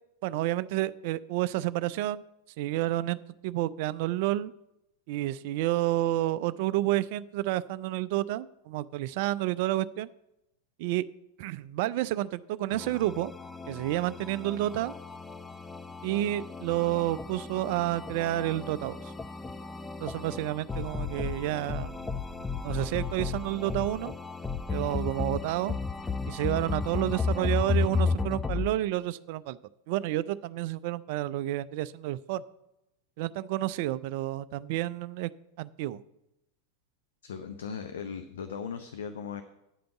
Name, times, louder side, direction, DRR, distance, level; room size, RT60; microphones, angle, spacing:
voice 1, 0.2-2.2 2.6-3.2 3.4-4.5 5.1-10.1 10.8-11.0 11.4-13.3 13.7-14.9 16.0-19.1 20.0-22.0 22.6-24.1 24.7-25.7 26.3-29.6 29.9-32.4 33.2-35.3 35.6-36.0, right 15 dB, 50° right, 18 dB, 0.3 m, -30 dB
sound 1, 12.7-28.7, left 4 dB, 10° left, 0.5 m, -34 dB
voice 2, 37.2-39.4, left 6 dB, 65° left, 8 dB, 0.6 m, -38 dB
9.2 x 5.1 x 7.8 m, 0.88 s
figure-of-eight pair, 90°, 0 cm